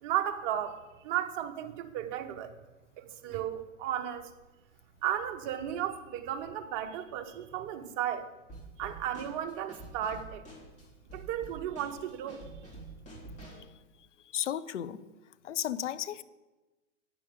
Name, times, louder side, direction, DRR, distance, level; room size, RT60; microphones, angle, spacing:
voice 1, 0.0-2.6 3.0-4.3 5.0-8.3 8.8-10.5 11.1-12.5, right 10 dB, 40° right, 1.0 m, -34 dB
Drum kit / Snare drum, 8.5-13.7, right 2 dB, 20° left, 3.2 m, -48 dB
voice 2, 14.3-15.0 15.4-16.2, left 11 dB, 75° left, 0.7 m, -33 dB
14.0 x 9.4 x 3.8 m
hypercardioid pair, 120°, 36 cm